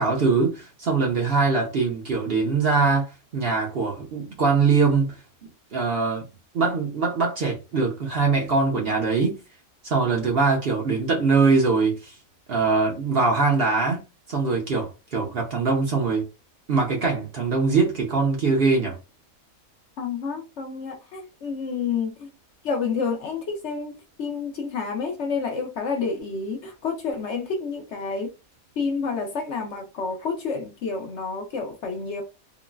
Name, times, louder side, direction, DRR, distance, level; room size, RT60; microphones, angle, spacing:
voice 1, 0.0-5.2 5.7-6.2 6.5-9.4 9.8-12.1 12.5-14.0 14.3-16.2 16.7-19.0, right 4 dB, 50° right, 0.8 m, -22 dB
voice 2, 20.0-22.3 22.6-23.9 24.2-28.3 28.8-32.2, left 5 dB, 60° left, 0.9 m, -29 dB
3.7 x 2.1 x 2.3 m
omnidirectional pair, 1.5 m